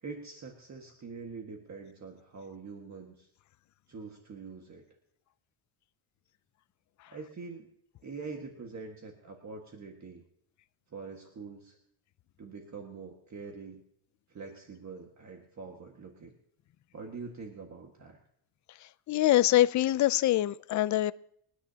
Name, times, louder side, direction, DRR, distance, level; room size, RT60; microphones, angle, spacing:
voice 1, 0.0-3.3 3.9-4.8 7.1-7.7 8.0-10.2 10.9-11.8 12.4-13.8 14.3-16.3 16.9-18.2, right 4 dB, 35° right, 1.7 m, -44 dB
voice 2, 19.1-21.1, left 14 dB, 40° left, 0.4 m, -24 dB
28.5 x 10.0 x 2.8 m
cardioid pair, 115°, 49 cm